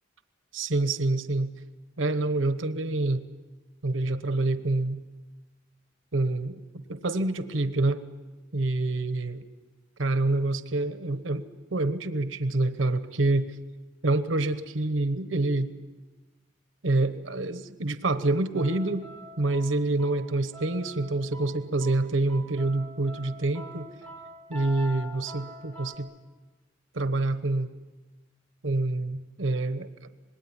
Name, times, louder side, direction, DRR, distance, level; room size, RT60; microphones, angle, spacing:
voice 1, 0.5-1.5 2.0-3.2 3.8-5.0 6.1-6.6 6.9-8.0 8.5-9.4 10.0-11.5 11.7-13.6 14.0-15.7 16.8-19.1 19.4-23.9 24.5-26.1 26.9-27.7 28.6-29.9, right 2 dB, 90° right, 11 dB, 1.1 m, -27 dB
sound 1, 18.6-26.0, right 1 dB, 10° left, 4.5 m, -45 dB
26.0 x 20.5 x 10.0 m, 1.3 s
head